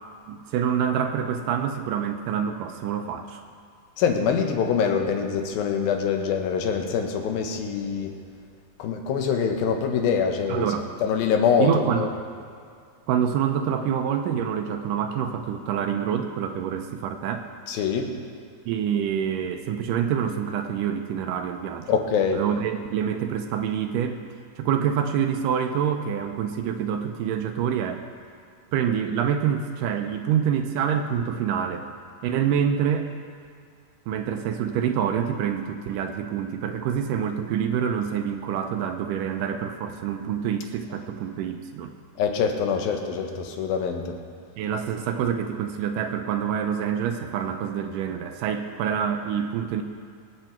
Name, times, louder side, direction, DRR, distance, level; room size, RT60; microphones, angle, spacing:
voice 1, 0.3-3.4 10.5-10.8 11.6-12.1 13.1-17.5 18.7-21.9 22.3-24.2 24.6-28.0 28.7-31.8 32.2-33.1 34.1-42.0 44.6-49.8, right 8 dB, 80° right, 6 dB, 2.2 m, -26 dB
voice 2, 4.0-8.1 8.8-10.7 11.0-12.1 17.7-18.1 21.9-22.4 42.2-44.2, left 6 dB, 90° left, 4 dB, 2.9 m, -24 dB
24.0 x 8.1 x 4.4 m, 2.2 s
omnidirectional pair, 4.1 m